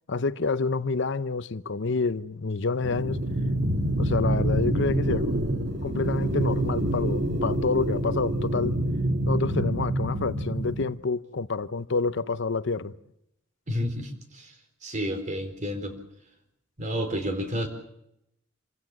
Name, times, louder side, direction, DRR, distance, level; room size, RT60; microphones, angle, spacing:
voice 1, 0.1-3.2 4.0-5.4 5.8-8.8 9.3-12.9, left 4 dB, 65° left, 0.8 m, -28 dB
sound 1, 2.8-10.8, right 1 dB, 60° right, 2.0 m, -26 dB
voice 2, 13.7-14.5 14.8-16.0 16.8-17.7, equal, 40° right, 4.0 m, -30 dB
27.5 x 16.0 x 7.4 m
head